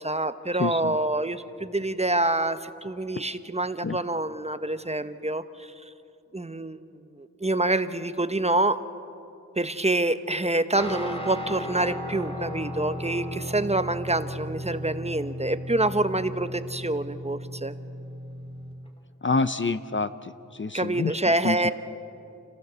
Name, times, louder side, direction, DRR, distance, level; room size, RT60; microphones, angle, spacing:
voice 1, 0.0-5.7 6.3-6.8 7.2-8.8 9.6-17.7 20.7-21.7, right 2 dB, 20° right, 11 dB, 0.9 m, -26 dB
voice 2, 0.6-1.0 3.8-4.0 19.2-20.3 20.6-21.1 21.4-21.7, left 3 dB, 35° left, 12 dB, 0.7 m, -27 dB
Guitar, 10.8-18.9, equal, 15° left, 2.7 m, -36 dB
29.0 x 15.0 x 6.9 m, 2.7 s
cardioid pair, 50°, 33 cm